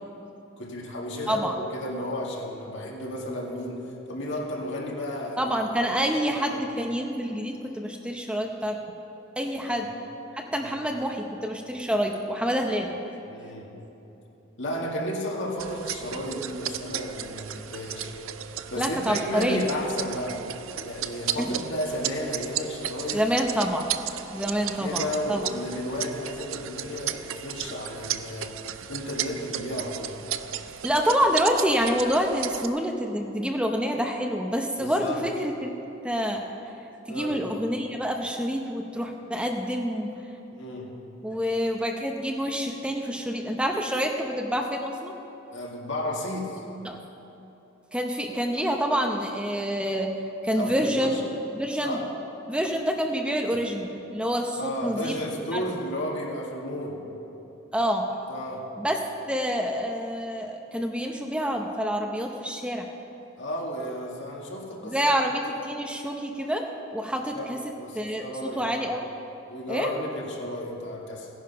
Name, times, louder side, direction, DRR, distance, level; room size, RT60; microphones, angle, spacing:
voice 1, 0.6-5.6 5.9-6.0 6.4-6.6 9.6-9.9 10.6-10.7 13.3-13.8 14.6-18.1 18.7-20.5 20.8-23.4 24.6-28.6 28.9-30.2 34.8-35.2 37.1-37.4 40.5-40.9 45.5-46.6 50.6-51.2 51.8-52.0 54.6-57.0 58.3-58.7 63.4-65.1 67.1-67.5 67.8-68.7 69.5-71.3, left 1 dB, 65° left, -1 dB, 2.1 m, -33 dB
voice 2, 5.4-8.8 9.4-9.9 10.3-12.9 18.8-19.6 21.4-21.5 23.1-23.9 24.3-25.4 30.8-36.5 37.1-40.1 41.2-45.1 46.8-47.0 47.9-50.1 50.4-51.2 51.5-52.0 52.5-55.2 55.5-55.6 57.7-58.0 58.8-59.0 59.3-62.9 64.8-66.7 66.9-67.6 67.9-69.1 69.7-69.9, equal, 5° right, 2 dB, 0.8 m, -27 dB
sound 1, 15.6-32.7, right 10 dB, 90° right, 0.5 m, -35 dB
16.5 x 10.5 x 5.6 m, 3.0 s
head